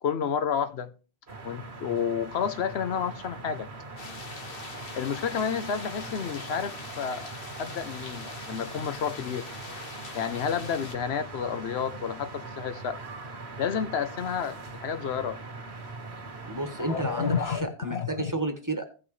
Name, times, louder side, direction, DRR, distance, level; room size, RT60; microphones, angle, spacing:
voice 1, 0.0-0.9 1.4-3.7 4.9-7.3 7.6-9.5 10.1-13.0 13.6-15.4 16.8-18.3, left 7 dB, 80° left, 1.0 m, -30 dB
sound 1, 1.3-17.6, right 3 dB, 85° right, 1.8 m, -42 dB
sound 2, 4.0-10.9, left 4 dB, 60° left, 1.4 m, -43 dB
voice 2, 16.5-18.8, right 1 dB, 20° right, 1.3 m, -31 dB
16.0 x 6.2 x 3.1 m
omnidirectional pair, 1.1 m